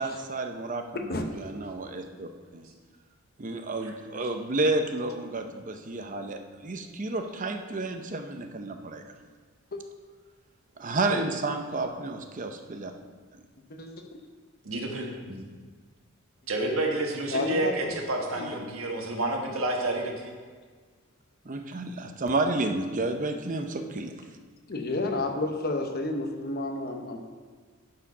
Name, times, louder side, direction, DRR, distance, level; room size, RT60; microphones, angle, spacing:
voice 1, 0.0-2.7 3.4-9.0 10.8-12.9 21.5-24.1, right 2 dB, 40° right, 6 dB, 0.7 m, -31 dB
voice 2, 13.7-14.2 17.3-17.9 18.4-18.7 24.7-27.2, left 2 dB, 45° left, 4 dB, 0.9 m, -31 dB
voice 3, 14.6-15.4 16.5-20.3, right 2 dB, 75° right, 1 dB, 1.4 m, -30 dB
11.0 x 4.9 x 5.5 m, 1.6 s
head